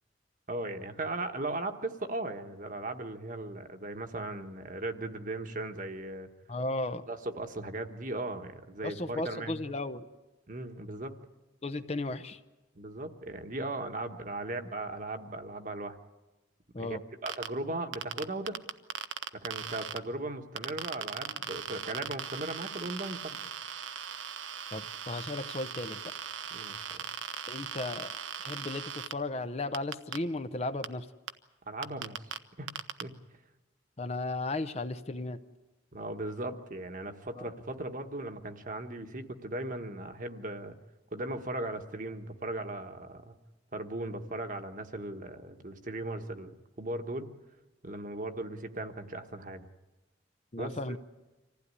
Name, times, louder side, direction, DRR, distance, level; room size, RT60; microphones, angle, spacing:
voice 1, 0.5-6.3 7.1-9.6 10.5-11.1 12.7-16.0 16.8-18.6 19.3-23.4 26.5-27.1 31.7-32.2 32.6-32.7 33.0-33.1 35.9-40.8 41.1-43.3 43.7-46.5 46.8-47.3 47.8-49.7 50.6-51.0, right 2 dB, 45° right, 6 dB, 1.3 m, -37 dB
voice 2, 6.5-7.0 8.8-10.0 11.6-12.4 16.7-17.0 24.7-26.0 27.5-28.1 28.4-31.1 34.0-35.4 37.4-37.5 50.5-51.0, left 2 dB, 35° left, 10 dB, 0.7 m, -35 dB
sound 1, 17.3-17.5 17.9-20.0 20.6-29.1 29.7-30.2 30.8-30.9 31.3-31.4 31.8-32.4 32.7-33.0, right 8 dB, 85° right, 0.9 m, -38 dB
26.0 x 15.5 x 9.7 m, 1.1 s
head